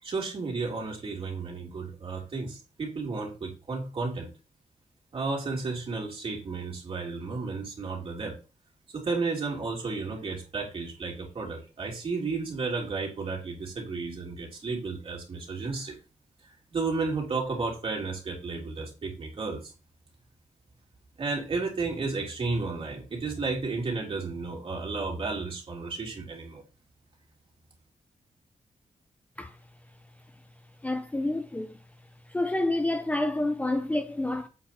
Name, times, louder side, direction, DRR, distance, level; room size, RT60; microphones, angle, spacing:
voice 1, 0.0-4.3 5.1-8.4 8.9-16.0 16.4-19.7 21.2-26.6, right 4 dB, 45° right, 3.3 m, -33 dB
voice 2, 30.8-31.8 32.3-34.5, left 2 dB, 10° left, 0.6 m, -28 dB
8.2 x 4.9 x 4.3 m
wide cardioid pair, 155°, 13 cm